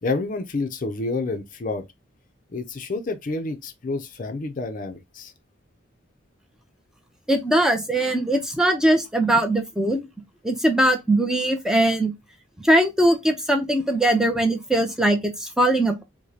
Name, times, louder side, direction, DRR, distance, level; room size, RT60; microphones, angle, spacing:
voice 1, 0.0-1.8 2.5-5.3, left 3 dB, 45° left, 0.5 m, -29 dB
voice 2, 7.3-10.1 10.4-12.1 12.6-16.0, right 1 dB, 5° right, 0.5 m, -21 dB
4.8 x 2.1 x 2.7 m
head